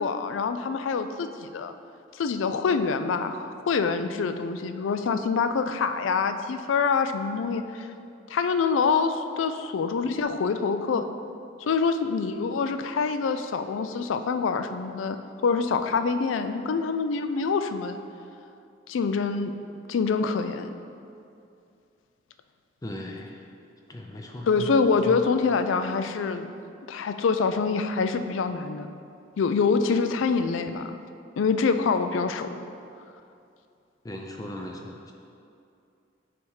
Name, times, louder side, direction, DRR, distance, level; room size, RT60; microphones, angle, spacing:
voice 1, 0.0-1.7 2.1-7.9 8.3-11.1 11.6-15.2 15.4-18.0 18.9-19.5 19.9-20.7 24.5-26.5 26.9-28.9 29.4-30.9 31.4-32.6, left 5 dB, 90° left, 9 dB, 0.4 m, -25 dB
voice 2, 22.8-23.4 23.9-24.7 25.1-25.2 34.0-35.1, left 1 dB, 20° left, 1 dB, 0.4 m, -37 dB
7.9 x 3.5 x 4.7 m, 2.5 s
head